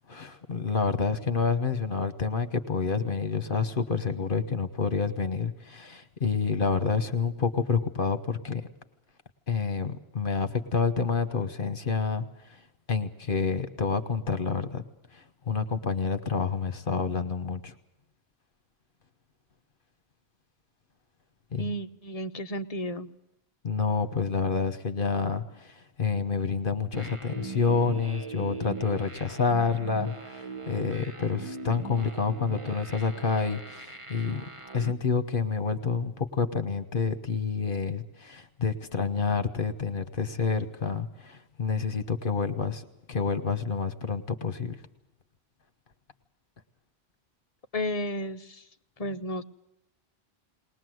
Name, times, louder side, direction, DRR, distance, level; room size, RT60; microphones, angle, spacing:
voice 1, 0.1-8.6 9.5-12.6 12.9-14.8 15.1-17.7 21.5-21.7 23.6-34.4 34.7-44.8, left 5 dB, 55° left, 9 dB, 1.4 m, -28 dB
voice 2, 21.6-23.1 47.7-48.6 49.0-49.4, equal, 35° left, 8 dB, 1.0 m, -32 dB
sound 1, 26.9-34.9, right 4 dB, 30° right, 1.3 m, -40 dB
20.5 x 20.0 x 7.9 m, 0.84 s
omnidirectional pair, 1.1 m